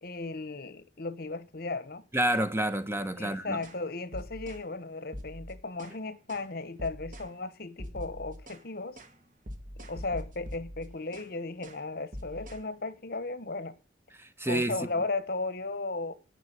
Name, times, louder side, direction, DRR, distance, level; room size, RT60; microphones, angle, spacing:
voice 1, 0.0-2.0 3.2-9.0 9.8-13.8 14.5-16.1, left 3 dB, 55° left, 1.3 m, -35 dB
voice 2, 2.1-3.6 14.2-14.7, right 1 dB, 15° right, 1.1 m, -29 dB
sound 1, 3.6-3.8 4.1-4.6 5.1-6.0 6.3-6.5 6.8-7.3 7.8-8.6 9.0-9.1 9.5-11.3 11.6-11.8 12.1-12.6, equal, 50° right, 2.1 m, -43 dB
17.5 x 6.2 x 8.2 m
head